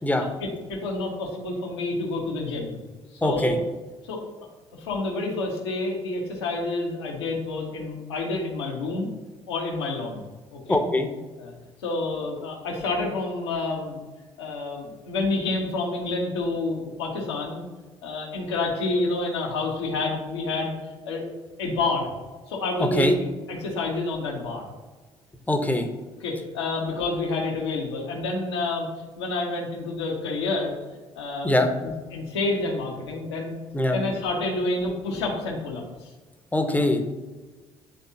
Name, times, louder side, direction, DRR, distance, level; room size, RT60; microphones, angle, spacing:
voice 1, 0.7-2.8 3.1-3.6 4.0-4.2 4.8-9.1 9.5-10.2 10.5-10.8 11.4-11.5 11.8-14.1 14.4-17.7 18.0-20.7 21.0-21.2 21.6-22.1 22.5-24.6 26.2-28.9 29.2-30.7 31.1-33.6 33.9-36.1, left 2 dB, 80° left, -1 dB, 1.3 m, -28 dB
voice 2, 3.2-3.6 10.7-11.1 22.8-23.1 25.5-25.9 31.4-31.7 33.7-34.0 36.5-37.1, left 1 dB, 10° left, 5 dB, 1.0 m, -22 dB
9.9 x 3.5 x 2.8 m, 1.3 s
hypercardioid pair, 50°, 14 cm